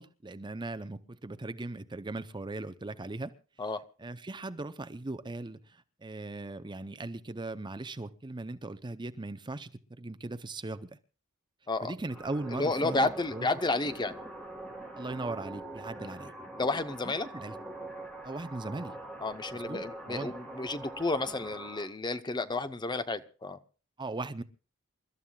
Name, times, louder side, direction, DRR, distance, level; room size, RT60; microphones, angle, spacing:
voice 1, 0.0-3.3 4.0-10.9 11.8-13.5 15.0-16.3 17.0-17.6 18.2-19.0 19.5-20.3 24.0-24.4, right 2 dB, 20° right, 12 dB, 0.6 m, -39 dB
sound 1, 12.1-21.9, right 1 dB, 5° left, 3.6 m, -43 dB
voice 2, 12.5-14.1 16.0-16.1 16.6-17.3 19.2-23.6, left 2 dB, 20° left, 11 dB, 0.8 m, -31 dB
28.5 x 13.0 x 2.3 m, 0.36 s
head